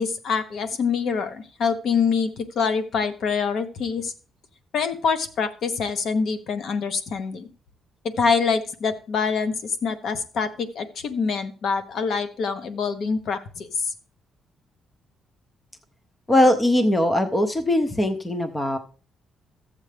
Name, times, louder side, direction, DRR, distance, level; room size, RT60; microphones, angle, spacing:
voice 1, 0.0-4.1 4.7-7.5 8.0-13.9, left 5 dB, 50° left, 10 dB, 0.8 m, -25 dB
voice 2, 16.3-18.8, left 1 dB, 15° left, 8 dB, 0.6 m, -20 dB
13.5 x 7.5 x 3.3 m, 0.38 s
cardioid pair, 165°, 0 cm